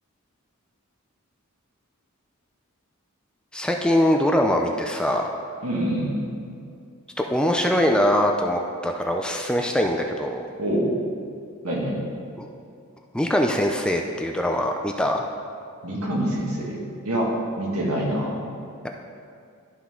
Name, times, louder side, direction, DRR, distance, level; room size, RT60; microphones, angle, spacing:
voice 1, 3.5-5.3 7.2-10.5 12.4-12.5 13.1-15.2, equal, 5° left, 2 dB, 0.4 m, -22 dB
voice 2, 5.6-6.2 10.6-10.9 11.6-12.1 15.8-16.8 17.1-17.3 17.6-18.4, right 1 dB, 75° right, -4 dB, 2.0 m, -25 dB
12.0 x 5.9 x 3.7 m, 2.4 s
head